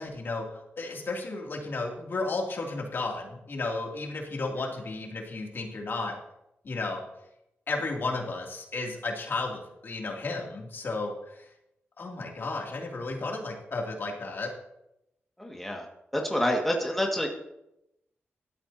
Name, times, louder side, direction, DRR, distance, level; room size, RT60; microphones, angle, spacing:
voice 1, 0.0-6.2 6.6-7.0 7.7-11.5 12.0-14.5, left 3 dB, 55° left, 0 dB, 2.8 m, -33 dB
voice 2, 15.4-15.9 16.1-17.3, equal, 5° left, 0 dB, 2.0 m, -27 dB
16.0 x 12.5 x 2.8 m, 0.85 s
wide cardioid pair, 100°, 4 cm